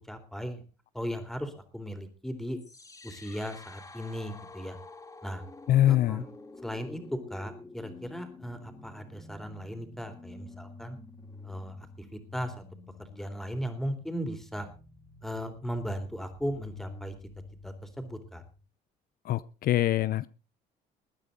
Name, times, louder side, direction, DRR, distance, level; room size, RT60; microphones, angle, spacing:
voice 1, 0.1-0.6 0.9-2.6 3.0-4.8 5.2-5.4 5.9-6.2 6.6-11.0 11.4-12.5 13.0-14.7 15.2-17.1 17.6-18.4, equal, ahead, 7 dB, 3.5 m, -37 dB
sound 1, 2.6-18.6, left 3 dB, 20° left, 3.3 m, -49 dB
voice 2, 5.7-6.2 19.2-20.3, left 13 dB, 60° left, 16 dB, 0.6 m, -24 dB
21.0 x 9.8 x 3.9 m, 0.33 s
cardioid pair, 110°, 17 cm